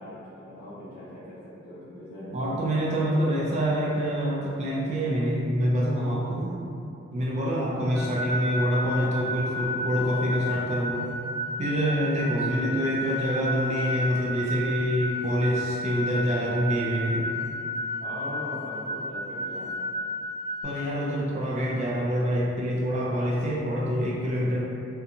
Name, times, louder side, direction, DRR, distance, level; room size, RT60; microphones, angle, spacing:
voice 1, 0.0-1.4 1.6-3.2 7.7-8.1 12.1-12.6 18.0-20.0, left 1 dB, 45° left, -12 dB, 1.1 m, -41 dB
voice 2, 2.3-6.5 7.1-11.1 11.6-17.3 20.6-24.6, equal, 35° right, -5 dB, 0.3 m, -26 dB
sound 1, 8.0-20.6, left 1 dB, ahead, 0.9 m, -32 dB
2.5 x 2.2 x 2.7 m, 2.6 s
head